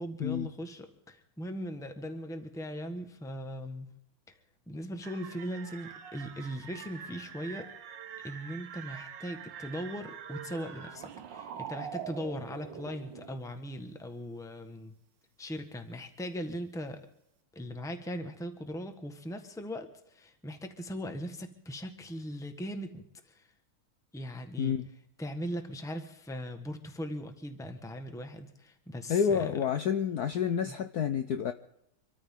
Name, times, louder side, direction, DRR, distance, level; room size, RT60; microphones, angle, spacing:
voice 1, 0.0-3.9 4.3-4.4 4.7-7.7 8.2-14.9 15.4-17.0 17.5-23.4 24.1-24.7 25.2-29.5 30.6-30.7, equal, ahead, 7 dB, 1.0 m, -39 dB
sound 1, 5.0-13.3, right 8 dB, 65° right, 1.6 m, -44 dB
voice 2, 29.1-31.5, left 7 dB, 65° left, 8 dB, 1.0 m, -29 dB
26.0 x 13.5 x 3.7 m, 0.75 s
omnidirectional pair, 2.3 m